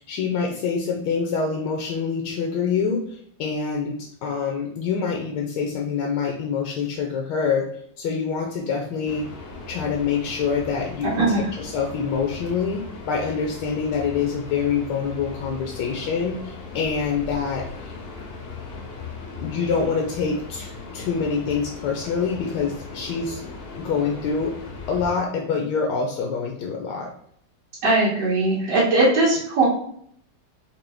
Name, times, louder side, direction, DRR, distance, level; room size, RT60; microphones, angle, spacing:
voice 1, 0.0-7.7 8.0-9.3 9.7-11.1 11.6-17.9 19.3-23.4 23.8-24.5 24.9-27.1, left 5 dB, 85° left, 1 dB, 1.2 m, -26 dB
sound 1, 9.1-25.2, left 4 dB, 60° left, 0.6 m, -38 dB
voice 2, 11.2-11.5 27.8-29.7, right 2 dB, 80° right, -7 dB, 1.6 m, -19 dB
4.5 x 2.2 x 3.3 m, 0.66 s
omnidirectional pair, 1.8 m